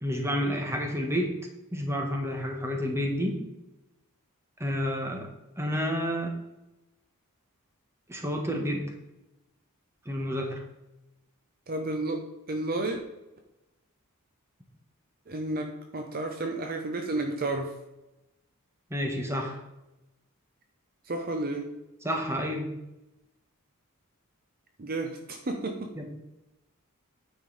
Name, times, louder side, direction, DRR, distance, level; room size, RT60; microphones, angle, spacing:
voice 1, 0.0-1.4 1.7-3.4 4.6-5.3 5.6-6.3 8.1-8.9 10.0-10.6 18.9-19.6 22.0-22.7 26.0-26.1, equal, 10° right, 2 dB, 1.3 m, -30 dB
voice 2, 11.7-13.0 15.3-17.7 21.1-21.7 24.8-25.9, right 2 dB, 40° right, 4 dB, 0.7 m, -32 dB
9.5 x 5.3 x 4.1 m, 0.97 s
head